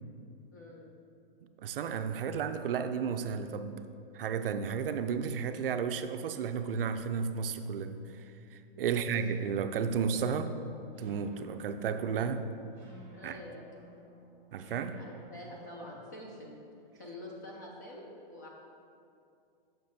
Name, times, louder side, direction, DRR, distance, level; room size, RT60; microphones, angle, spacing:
voice 1, 0.5-0.9 8.7-9.1 13.1-13.7 15.0-16.5 16.9-18.5, left 1 dB, 20° left, -2 dB, 0.4 m, -47 dB
voice 2, 1.6-3.8 4.1-10.5 11.0-12.4 13.2-13.4 14.5-15.0, right 6 dB, 70° right, 9 dB, 0.5 m, -33 dB
sound 1, 10.2-16.2, right 1 dB, 5° right, 1.0 m, -55 dB
6.6 x 6.3 x 2.7 m, 2.5 s
hypercardioid pair, 170°, 29 cm